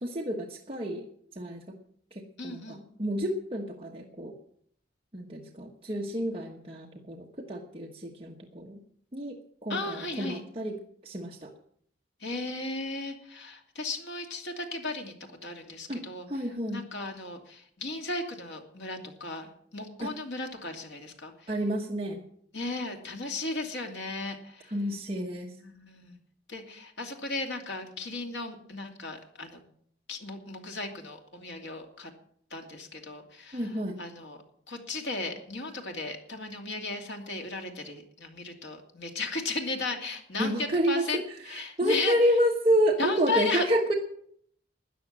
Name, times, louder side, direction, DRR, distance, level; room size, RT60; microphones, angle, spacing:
voice 1, 0.0-1.1 1.3-1.8 2.1-4.3 5.1-8.8 9.1-11.5 15.9-16.9 20.0-20.1 21.5-22.2 24.7-25.5 33.5-34.0 40.4-41.0 41.5-43.9, equal, 30° right, 0 dB, 1.3 m, -29 dB
voice 2, 2.4-2.8 9.7-10.4 12.2-15.1 15.4-16.5 16.7-21.5 22.5-24.7 25.6-26.2 26.5-29.6 30.1-32.1 32.5-33.7 34.0-34.4 34.7-42.1 43.0-43.7, left 3 dB, 85° left, 3 dB, 2.6 m, -35 dB
13.0 x 9.9 x 7.4 m, 0.65 s
head